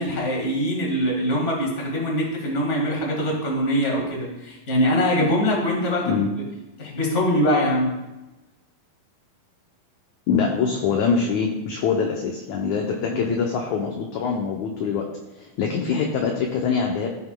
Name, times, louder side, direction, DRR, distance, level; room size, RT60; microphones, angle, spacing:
voice 1, 0.0-6.2 6.8-7.9 13.1-13.2, equal, 30° left, -1 dB, 1.3 m, -23 dB
voice 2, 10.3-15.0 15.3-17.1, left 5 dB, 75° left, 0 dB, 1.7 m, -24 dB
15.0 x 6.0 x 2.3 m, 1.0 s
omnidirectional pair, 4.1 m